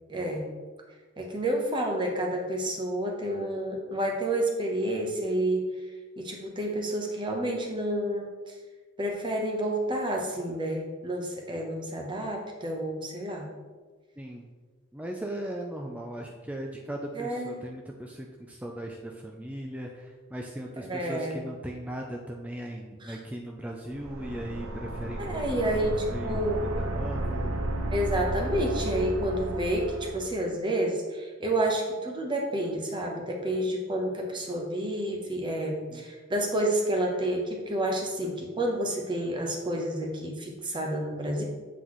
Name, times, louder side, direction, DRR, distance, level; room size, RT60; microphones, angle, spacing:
voice 1, 0.1-0.4 1.2-5.6 6.2-8.5 9.0-13.5 17.1-17.5 20.8-21.4 23.0-23.2 25.2-26.6 27.9-41.4, right 1 dB, 20° right, 0 dB, 0.9 m, -29 dB
voice 2, 14.9-25.7 26.1-27.6 35.6-36.1, right 1 dB, 5° right, 0 dB, 0.3 m, -38 dB
sound 1, 23.9-30.4, right 1 dB, 80° right, 0.7 m, -33 dB
7.9 x 4.0 x 3.1 m, 1.4 s
head